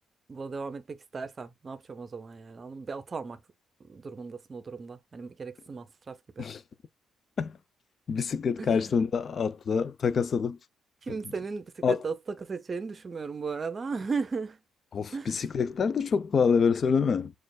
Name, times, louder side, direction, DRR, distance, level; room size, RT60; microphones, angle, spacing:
voice 1, 0.3-3.4 3.9-6.5 8.6-9.0 11.0-14.6 15.1-15.5, right 4 dB, 35° right, 0.6 m, -36 dB
voice 2, 8.1-10.6 11.8-12.0 14.9-17.3, left 6 dB, 50° left, 0.4 m, -26 dB
6.3 x 2.5 x 2.2 m
cardioid pair, 90°, 0 cm